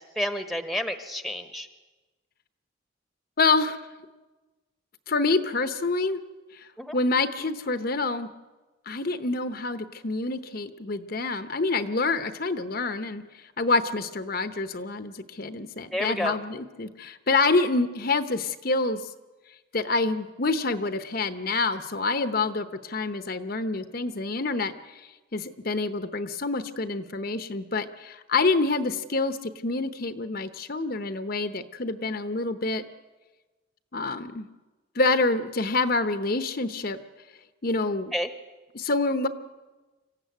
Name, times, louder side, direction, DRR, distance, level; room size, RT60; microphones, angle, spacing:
voice 1, 0.0-1.7 6.8-6.9 15.9-16.3 38.1-38.3, equal, ahead, 8 dB, 1.1 m, -30 dB
voice 2, 3.4-3.8 5.1-6.2 6.6-6.7 6.9-8.3 8.9-13.2 13.6-19.0 19.7-24.7 25.3-32.8 33.9-34.5 35.0-37.0 37.6-38.1 38.7-39.3, left 3 dB, 50° left, 10 dB, 0.9 m, -27 dB
26.0 x 15.0 x 9.4 m, 1.2 s
head